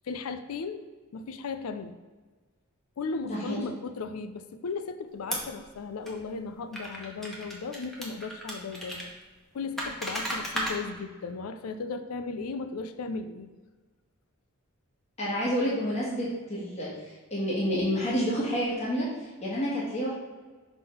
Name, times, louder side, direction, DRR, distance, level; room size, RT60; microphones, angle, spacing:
voice 1, 0.0-0.8 1.1-2.0 3.0-9.1 9.5-13.5, left 4 dB, 85° left, 10 dB, 0.4 m, -36 dB
voice 2, 3.3-3.6 15.2-20.1, equal, 30° left, -7 dB, 1.5 m, -29 dB
sound 1, 5.3-5.6 6.1-6.2 6.7-9.1 9.8-10.8, equal, ahead, 1.1 m, -34 dB
6.0 x 3.7 x 5.5 m, 1.4 s
head